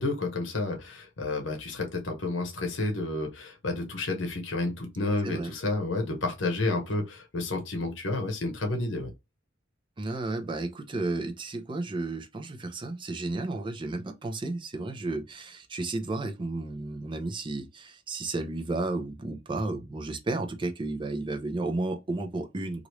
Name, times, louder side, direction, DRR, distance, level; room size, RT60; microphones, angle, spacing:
voice 1, 0.0-9.1, left 2 dB, 70° left, 0.9 m, -30 dB
voice 2, 10.0-22.9, right 2 dB, 25° right, 0.5 m, -33 dB
3.0 x 2.5 x 3.0 m
head